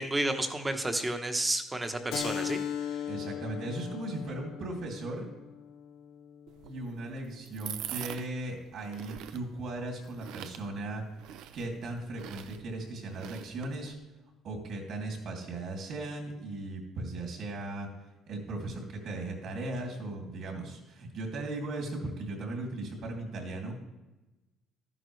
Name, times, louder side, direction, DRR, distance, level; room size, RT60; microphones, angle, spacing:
voice 1, 0.0-2.6 2.9-3.0, right 1 dB, 15° right, 6 dB, 1.0 m, -31 dB
Keyboard (musical), 2.1-7.2, left 9 dB, 65° left, 0.5 m, -39 dB
voice 2, 3.1-5.3 6.6-11.0 11.5-13.9 14.4-17.9 18.3-23.7, right 2 dB, 60° right, 1 dB, 2.7 m, -37 dB
sound 1, 6.5-13.9, right 11 dB, 80° right, 0.5 m, -45 dB
12.5 x 11.0 x 3.2 m, 1.0 s
cardioid pair, 120°, 0 cm